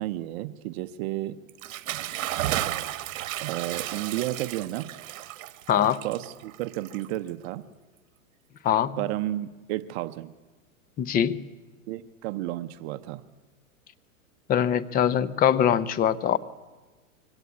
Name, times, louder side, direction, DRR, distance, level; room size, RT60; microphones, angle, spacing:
voice 1, 0.0-1.4 3.4-4.9 6.0-7.6 9.0-10.3 11.9-13.2, right 15 dB, 50° right, 0.8 m, -32 dB
Bathtub (filling or washing) / Splash splatter, 1.5-7.4, right 13 dB, 65° right, 1.4 m, -33 dB
voice 2, 5.7-6.0 8.6-9.0 11.0-11.4 14.5-16.4, left 9 dB, 20° left, 0.7 m, -23 dB
23.0 x 17.0 x 9.5 m
supercardioid pair, 135°, 41 cm